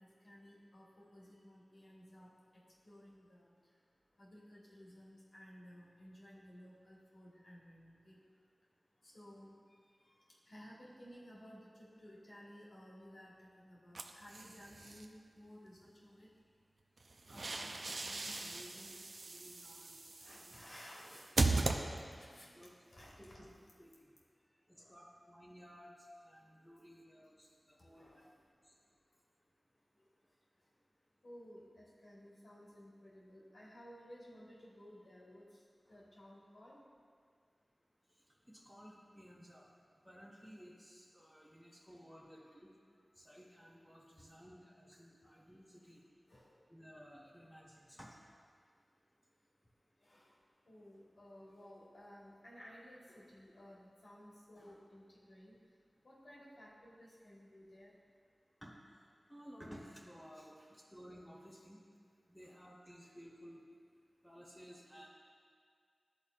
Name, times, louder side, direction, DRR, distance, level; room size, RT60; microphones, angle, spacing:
voice 1, 0.0-3.5 4.2-8.2 9.0-9.6 10.0-16.3 20.2-21.6 22.2-23.4 24.7-25.0 28.0-28.3 31.2-36.8 42.5-42.6 46.3-46.5 50.0-50.3 50.7-55.6 56.0-58.0 60.6-60.7 62.4-62.6 63.0-63.1, equal, 75° left, -6 dB, 1.5 m, -57 dB
sound 1, 13.9-15.1 17.0-22.4, right 3 dB, 70° right, 0.4 m, -38 dB
voice 2, 17.3-17.7 18.0-19.0 19.2-20.0 20.3-20.5 22.5-23.5 23.8-24.1 24.9-25.9 26.2-28.2 28.6-28.7 38.5-39.7 40.0-42.7 43.2-46.0 46.7-48.1 58.6-58.7 59.3-61.8 62.3-63.6 64.2-65.1, equal, 10° left, -5 dB, 1.2 m, -56 dB
12.0 x 4.0 x 2.4 m, 2.1 s
cardioid pair, 45°, 0 cm